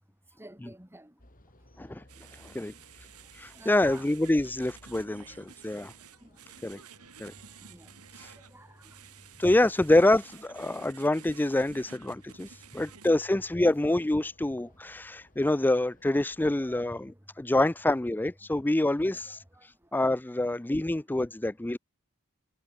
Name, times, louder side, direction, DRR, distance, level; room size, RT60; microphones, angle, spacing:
voice 1, 0.4-1.1 3.5-4.1 5.2-5.3 6.2-6.3 7.7-7.9 8.3-9.0 16.6-17.2 18.9-19.6, right 1 dB, 10° right, 3.1 m, -50 dB
sound 1, 1.2-17.1, left 1 dB, 40° left, 5.5 m, -60 dB
sound 2, 2.1-13.1, right 8 dB, 90° right, 3.5 m, -52 dB
voice 2, 2.3-2.7 3.3-5.9 6.6-6.8 7.2-7.3 8.1-8.3 9.4-21.8, left 1 dB, 10° left, 0.4 m, -27 dB
head